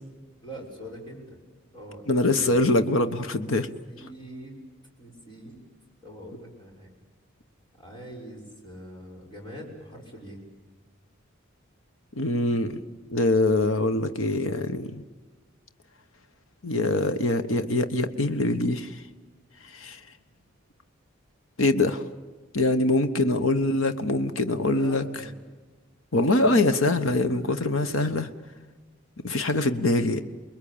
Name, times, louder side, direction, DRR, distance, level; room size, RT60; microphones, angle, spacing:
voice 1, 0.4-1.2 1.7-2.7 3.6-4.5 5.0-5.6 6.0-6.9 7.8-10.4 23.5-23.6 24.7-25.3, equal, 25° left, -1 dB, 6.4 m, -43 dB
voice 2, 2.1-3.7 12.1-12.8 13.1-15.0 16.6-19.0 19.6-20.0 21.6-22.0 22.5-25.0 26.1-28.3 29.2-30.2, left 2 dB, 80° left, 9 dB, 1.2 m, -24 dB
29.5 x 21.5 x 8.8 m, 1.3 s
head